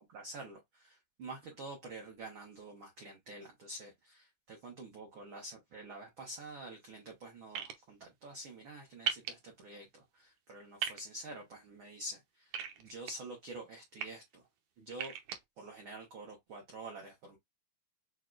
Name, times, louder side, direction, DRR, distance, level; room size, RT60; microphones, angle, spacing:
voice 1, 0.1-14.5 14.8-15.1 15.6-17.4, right 2 dB, 90° right, 1.1 m, -48 dB
sound 1, 7.5-7.7 9.1-9.3 10.8-11.0 12.5-13.1 13.8-14.1 14.9-15.4, right 9 dB, 70° right, 2.0 m, -36 dB
6.5 x 2.3 x 2.4 m
omnidirectional pair, 3.9 m